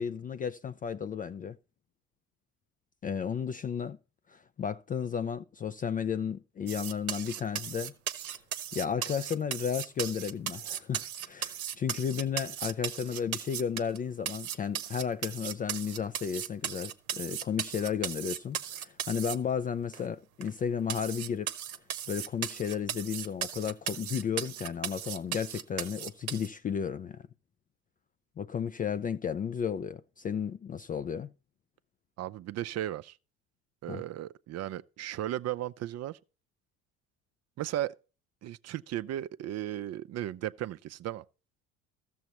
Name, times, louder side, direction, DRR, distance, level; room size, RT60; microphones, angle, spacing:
voice 1, 0.0-1.6 3.0-4.0 4.3-7.9 8.7-21.5 22.1-27.2 28.4-31.3 33.9-34.0, left 7 dB, 20° left, 0.3 m, -33 dB
sound 1, 6.7-14.0 14.3-19.4 19.9-20.0 20.4-20.5 20.9-26.5, right 10 dB, 85° right, 0.8 m, -36 dB
voice 2, 32.2-33.2 33.8-36.2 37.6-37.9 38.4-41.2, right 13 dB, 40° right, 0.5 m, -35 dB
14.0 x 7.0 x 2.9 m
hypercardioid pair, 60°, 41 cm